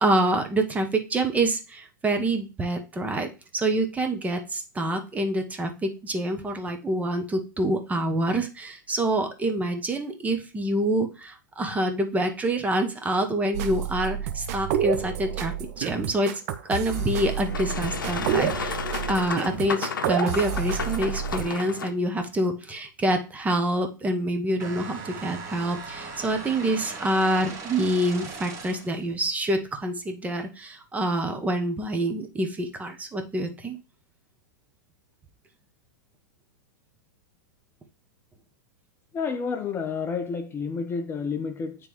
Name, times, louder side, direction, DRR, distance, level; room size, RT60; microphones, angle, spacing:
voice 1, 0.0-16.3 16.7-18.8 19.1-33.8, right 1 dB, 15° right, 0.9 m, -26 dB
sound 1, 13.5-21.4, right 9 dB, 50° right, 0.7 m, -29 dB
Boat Water vehicle, 16.9-21.9, left 6 dB, 85° left, 0.6 m, -33 dB
sound 2, 24.6-29.0, right 4 dB, 30° right, 1.4 m, -39 dB
voice 2, 39.1-41.9, left 5 dB, 20° left, 0.6 m, -30 dB
9.0 x 3.4 x 3.0 m
hypercardioid pair, 115°, 11 cm